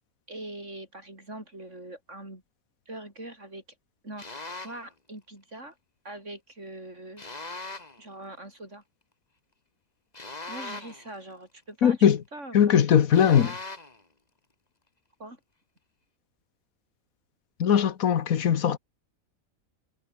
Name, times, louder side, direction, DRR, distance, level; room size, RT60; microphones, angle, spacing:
voice 1, 0.3-2.4 2.9-3.6 4.0-5.7 6.0-7.2 8.0-8.8 10.5-12.0 12.3-12.9 15.2-15.4, right 1 dB, 60° right, 7.7 m, -42 dB
sound 1, 4.2-4.9 7.2-8.0 10.1-11.1 13.1-14.0, left 3 dB, 30° left, 2.2 m, -40 dB
voice 2, 11.8-12.2 12.5-13.5 17.6-18.8, left 8 dB, 85° left, 1.6 m, -20 dB
omnidirectional pair, 1.4 m